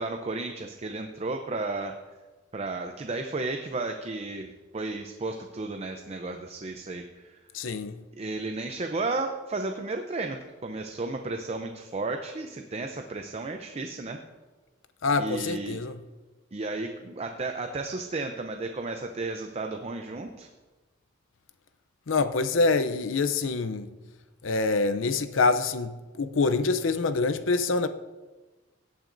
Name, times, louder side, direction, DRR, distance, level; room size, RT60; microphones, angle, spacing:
voice 1, 0.0-2.0 2.5-7.4 8.2-14.2 15.1-15.8 16.5-20.5, right 3 dB, 35° right, 0.6 m, -33 dB
voice 2, 7.5-8.0 15.0-16.0 22.1-23.9 24.4-27.9, left 3 dB, 75° left, 0.6 m, -25 dB
17.0 x 9.1 x 2.6 m
head